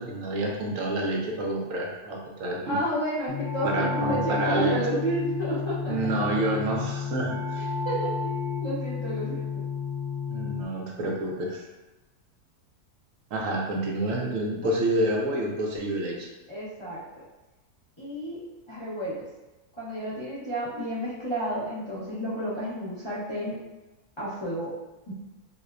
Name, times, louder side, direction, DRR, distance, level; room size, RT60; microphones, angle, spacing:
voice 1, 0.0-2.8 3.6-4.8 5.9-7.6 10.3-11.6 13.3-16.3, right 1 dB, 65° right, -1 dB, 0.9 m, -28 dB
voice 2, 2.6-6.3 7.8-8.1 8.6-9.6 14.4-14.7 16.5-17.0 18.0-18.4 18.7-19.2 19.8-23.6 24.2-24.7 25.1-25.2, right 1 dB, 25° left, -11 dB, 0.7 m, -31 dB
sound 1, 3.3-10.6, left 5 dB, 65° left, 0.8 m, -31 dB
4.1 x 2.1 x 2.4 m, 1.1 s
omnidirectional pair, 1.6 m